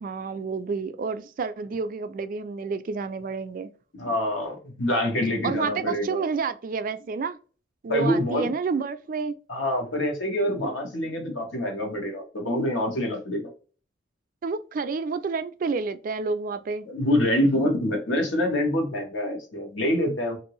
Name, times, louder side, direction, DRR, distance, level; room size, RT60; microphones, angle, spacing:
voice 1, 0.0-3.7 5.4-7.4 7.8-9.3 14.4-16.9, right 5 dB, 45° right, 0.3 m, -29 dB
voice 2, 3.9-6.2 7.9-8.5 9.5-13.5 16.8-20.4, left 1 dB, 85° left, 1.2 m, -26 dB
2.9 x 2.6 x 3.0 m
head